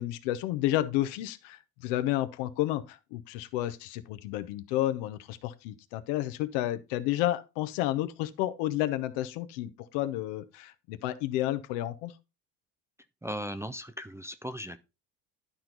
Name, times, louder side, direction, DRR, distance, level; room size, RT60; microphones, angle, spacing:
voice 1, 0.0-12.1, left 14 dB, 65° left, 0.9 m, -31 dB
voice 2, 13.2-14.8, equal, 5° right, 0.5 m, -37 dB
11.5 x 4.4 x 3.9 m
hypercardioid pair, 65°, 45 cm